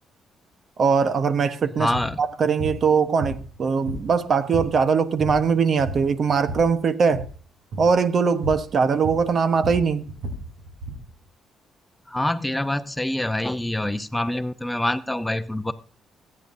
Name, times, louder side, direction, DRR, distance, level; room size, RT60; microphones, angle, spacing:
voice 1, 0.8-1.9 2.2-7.3 7.8-10.1, right 5 dB, 50° right, 1.0 m, -21 dB
voice 2, 1.8-2.2 12.1-15.7, left 1 dB, 10° left, 0.8 m, -26 dB
sound 1, 1.9-2.1 2.6-2.8 3.2-4.2 4.5-4.8 5.1-5.5 5.8-6.7 7.0-7.3 7.7-7.9 8.4-8.7 9.0-11.1, right 1 dB, 90° right, 4.0 m, -32 dB
23.0 x 8.8 x 2.7 m
cardioid pair, 80°, 0 cm